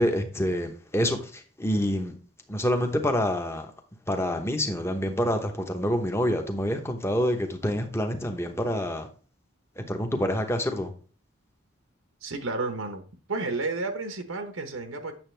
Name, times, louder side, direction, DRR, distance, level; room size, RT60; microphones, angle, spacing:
voice 1, 0.0-2.1 2.5-3.7 4.1-9.1 9.8-10.9, equal, 10° left, 0.9 m, -27 dB
voice 2, 12.2-13.0 13.3-15.2, right 3 dB, 80° right, 1.1 m, -31 dB
8.8 x 6.8 x 3.3 m
head